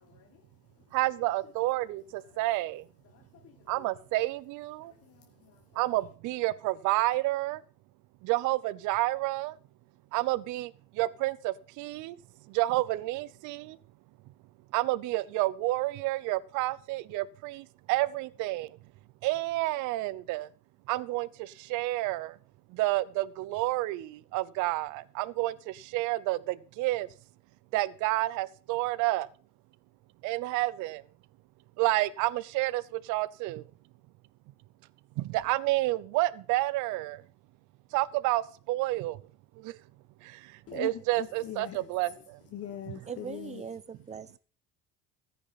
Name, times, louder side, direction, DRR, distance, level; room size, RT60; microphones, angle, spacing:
voice 1, 0.1-0.4 3.1-3.5 5.1-5.6 40.7-40.9 41.2-41.8 42.5-43.6, left 11 dB, 50° left, 1.1 m, -42 dB
voice 2, 0.9-2.9 3.7-4.9 5.7-7.6 8.2-9.6 10.1-12.2 12.4-13.8 14.7-18.8 19.2-20.5 20.9-22.4 22.7-27.1 27.7-29.3 30.2-31.0 31.8-33.7 35.2-37.2 37.9-39.2 39.6-39.8 40.2-42.4 42.9-43.1, right 18 dB, 70° right, 0.7 m, -30 dB
voice 3, 43.1-44.4, right 6 dB, 20° right, 0.6 m, -40 dB
14.0 x 9.5 x 4.1 m
cardioid pair, 110°, 32 cm